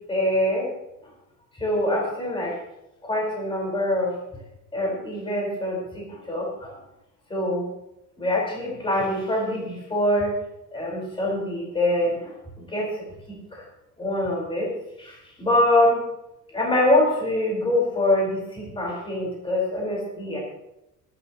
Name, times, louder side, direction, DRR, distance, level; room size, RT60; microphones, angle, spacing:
voice 1, 0.1-0.7 1.5-2.5 3.0-4.2 4.7-6.7 7.3-7.7 8.2-10.3 10.7-12.3 12.7-13.0 13.5-13.6 14.0-14.7 15.0-16.0 16.5-20.4, left 1 dB, 15° left, -3 dB, 4.7 m, -24 dB
26.0 x 12.0 x 3.1 m, 0.89 s
cardioid pair, 150°, 33 cm